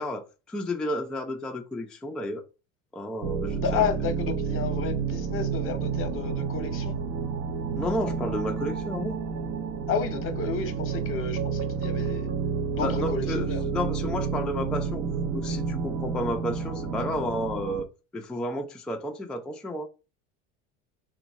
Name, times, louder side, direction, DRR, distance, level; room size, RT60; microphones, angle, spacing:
voice 1, 0.0-2.4 2.9-3.9 7.8-9.2 12.8-15.0 15.3-17.9 18.1-19.9, left 1 dB, ahead, 0.3 m, -31 dB
sound 1, 3.2-17.8, right 5 dB, 45° right, 0.6 m, -30 dB
voice 2, 3.5-7.0 9.9-12.3 12.7-13.6, left 6 dB, 35° left, 0.8 m, -31 dB
3.0 x 2.2 x 4.0 m
supercardioid pair, 95°, 37 cm